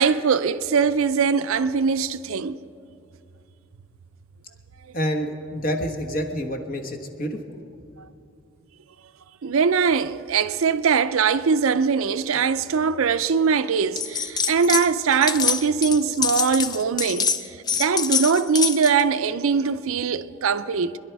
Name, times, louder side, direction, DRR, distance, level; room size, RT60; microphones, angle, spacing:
voice 1, 0.0-2.6 9.4-21.0, right 5 dB, 70° right, 0.5 m, -22 dB
voice 2, 4.9-7.6, equal, 40° left, 1.3 m, -28 dB
sound 1, 14.0-14.9 15.1-19.0, left 6 dB, 20° left, 0.3 m, -25 dB
25.5 x 11.0 x 4.6 m
head